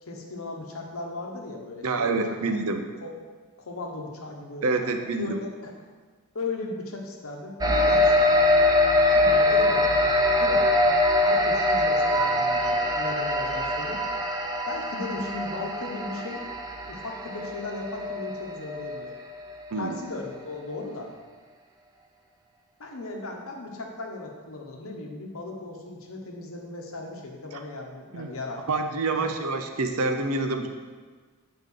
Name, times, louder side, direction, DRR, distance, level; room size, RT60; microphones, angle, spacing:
voice 1, 0.0-2.2 2.5-2.6 3.0-3.2 3.6-4.7 5.0-5.7 6.3-8.3 9.1-10.7 11.2-14.0 14.7-16.4 16.9-19.1 19.8-21.1 22.8-28.6 29.1-29.3, left 2 dB, 65° left, 1 dB, 1.1 m, -36 dB
voice 2, 1.8-2.8 4.6-5.4 19.7-20.0 27.5-27.6 28.1-28.3 28.7-30.7, right 3 dB, 70° right, 6 dB, 0.6 m, -27 dB
sound 1, 7.6-19.4, left 1 dB, 15° right, 0.5 m, -23 dB
7.8 x 5.2 x 3.8 m, 1.5 s
head